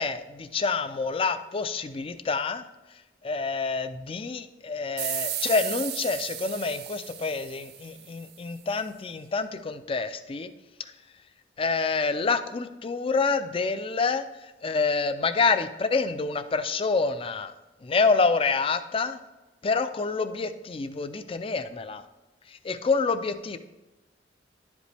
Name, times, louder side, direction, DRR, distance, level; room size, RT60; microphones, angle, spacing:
voice 1, 0.0-2.6 3.2-10.5 11.6-14.3 14.6-17.5 17.8-19.2 19.6-22.0 22.6-23.6, left 4 dB, 30° left, 11 dB, 0.4 m, -27 dB
sound 1, 5.0-8.3, right 10 dB, 60° right, 0.6 m, -34 dB
10.5 x 5.2 x 3.3 m, 1.1 s
head